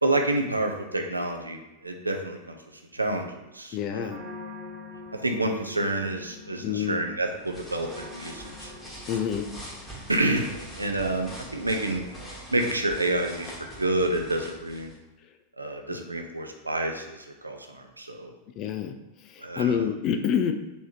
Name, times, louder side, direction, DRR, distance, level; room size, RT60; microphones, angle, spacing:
voice 1, 0.0-2.6 2.9-3.3 3.5-4.1 5.2-8.7 10.1-12.0 12.5-13.5 13.8-14.9 15.6-17.2 17.4-18.3 19.4-19.8, right 2 dB, 80° right, 4 dB, 0.5 m, -28 dB
voice 2, 3.7-4.2 6.6-7.0 9.1-9.5 18.6-20.5, left 8 dB, 35° left, 7 dB, 0.3 m, -27 dB
sound 1, 4.1-10.2, left 3 dB, 30° right, 1.2 m, -45 dB
sound 2, 7.2-15.0, equal, 10° left, 1.4 m, -43 dB
4.2 x 3.4 x 2.8 m, 1.0 s
figure-of-eight pair, 90°, 0 cm